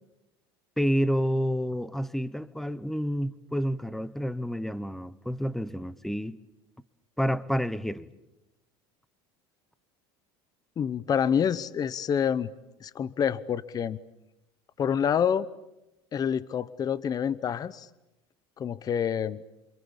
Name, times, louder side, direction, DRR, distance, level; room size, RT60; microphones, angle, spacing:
voice 1, 0.8-6.4 7.2-8.1, equal, ahead, 1.1 m, -29 dB
voice 2, 10.8-12.5 12.8-14.0 14.8-15.5 16.1-17.9 18.6-19.4, left 8 dB, 30° left, 0.8 m, -27 dB
27.5 x 26.5 x 7.3 m
supercardioid pair, 110°, 12 cm